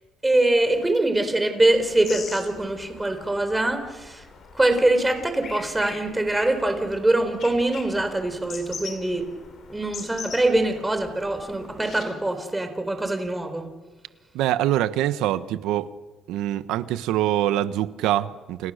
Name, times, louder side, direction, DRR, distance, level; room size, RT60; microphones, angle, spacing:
voice 1, 0.2-4.2 4.5-9.3 9.7-13.7, right 2 dB, 10° right, 4.2 m, -23 dB
sound 1, 1.7-12.1, left 5 dB, 45° left, 5.0 m, -42 dB
voice 2, 14.3-15.9 16.3-18.7, right 13 dB, 85° right, 1.3 m, -24 dB
29.5 x 28.5 x 6.7 m
cardioid pair, 130°, 0 cm